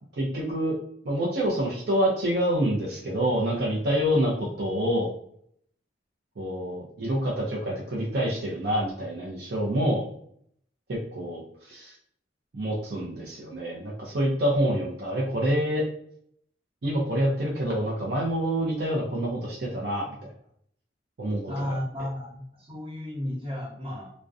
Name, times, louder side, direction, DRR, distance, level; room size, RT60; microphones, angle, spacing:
voice 1, 0.2-0.7 1.0-5.1 6.4-10.1 10.9-11.9 12.5-15.8 16.8-20.3 21.2-21.8, equal, 60° right, -4 dB, 0.5 m, -27 dB
voice 2, 21.5-24.1, left 1 dB, 30° right, -6 dB, 0.9 m, -33 dB
2.3 x 2.1 x 2.5 m, 0.67 s
head